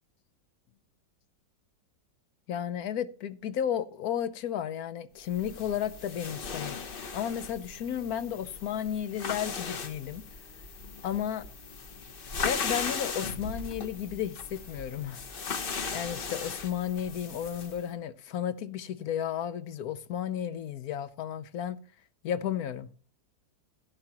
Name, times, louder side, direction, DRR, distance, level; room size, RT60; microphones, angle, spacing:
voice 1, 2.5-6.8 7.1-10.2 11.0-11.5 12.4-15.2 15.9-21.8 22.2-22.9, left 9 dB, 65° left, 1.1 m, -33 dB
sound 1, 5.3-17.8, left 5 dB, 40° left, 0.9 m, -38 dB
12.0 x 11.0 x 2.9 m
omnidirectional pair, 1.9 m